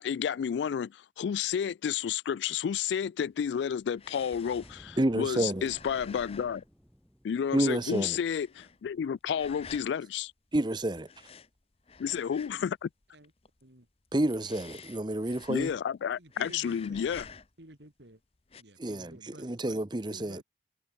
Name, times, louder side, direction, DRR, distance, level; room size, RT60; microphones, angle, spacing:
voice 1, 0.0-6.6 7.2-10.3 12.0-12.9 15.5-17.3, left 8 dB, 80° left, 0.3 m, -31 dB
sound 1, 3.3-7.3 7.7-9.0 9.3-10.0 11.0-12.8 13.0-13.6 14.1-16.0 16.3-17.7 18.4-18.6, left 5 dB, 35° left, 1.0 m, -50 dB
Boom, 4.3-9.0, equal, ahead, 4.1 m, -57 dB
voice 2, 5.0-5.6 7.5-8.2 10.5-11.1 14.1-15.7 18.8-20.4, right 1 dB, 25° right, 0.8 m, -29 dB
voice 3, 16.2-17.2 17.6-18.2 18.6-19.5 20.1-20.4, right 1 dB, 75° right, 3.6 m, -51 dB
head